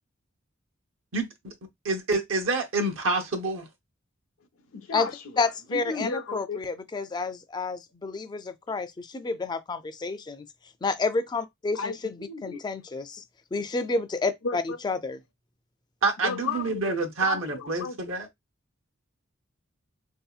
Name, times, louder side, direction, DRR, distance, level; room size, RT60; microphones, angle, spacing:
voice 1, 1.1-1.5 1.8-3.7 16.0-18.3, right 3 dB, 75° right, 0.8 m, -27 dB
voice 2, 4.7-6.6 11.7-12.6 14.4-14.8 16.2-16.9 17.2-18.0, left 4 dB, 90° left, 0.6 m, -34 dB
voice 3, 5.4-10.4 10.8-11.9 12.4-13.2 13.5-15.2, left 3 dB, 20° left, 0.3 m, -30 dB
3.6 x 2.7 x 2.3 m
head